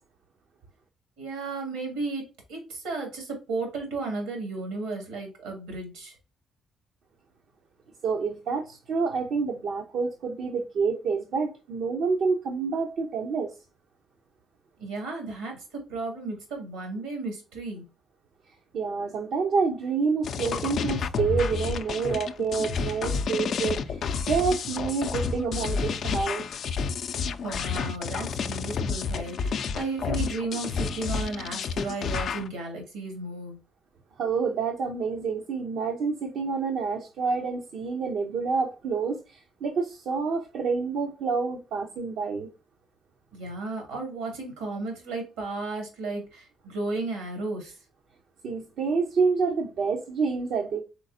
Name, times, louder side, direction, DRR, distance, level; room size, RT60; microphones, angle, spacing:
voice 1, 1.2-6.2 14.8-17.8 27.4-33.6 43.3-47.8, right 3 dB, 90° right, 2.2 m, -34 dB
voice 2, 8.0-13.5 18.7-26.5 34.2-42.5 48.4-50.8, right 5 dB, 70° right, 0.7 m, -28 dB
sound 1, 20.2-32.5, left 5 dB, 65° left, 0.4 m, -30 dB
4.5 x 4.0 x 2.6 m
hypercardioid pair, 55°, 0 cm